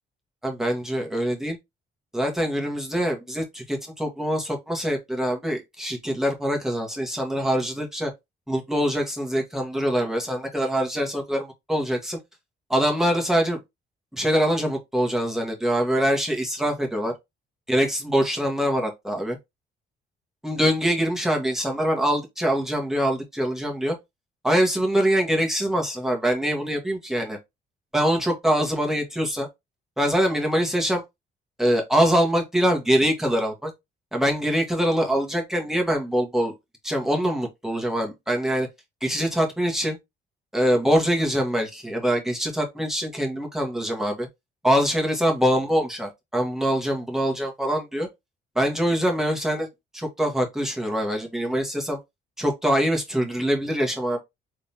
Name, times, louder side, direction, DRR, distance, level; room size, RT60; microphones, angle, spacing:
voice 1, 0.4-1.6 2.1-8.1 8.5-12.2 12.7-13.6 14.1-17.1 17.7-19.4 20.4-24.0 24.4-27.4 27.9-29.5 30.0-31.0 31.6-33.7 34.1-36.5 36.8-38.7 39.0-40.0 40.5-44.3 44.6-48.1 48.5-49.7 49.9-52.0 52.4-54.2, equal, ahead, 1.6 m, -24 dB
3.7 x 3.5 x 2.9 m
cardioid pair, 90°, 20 cm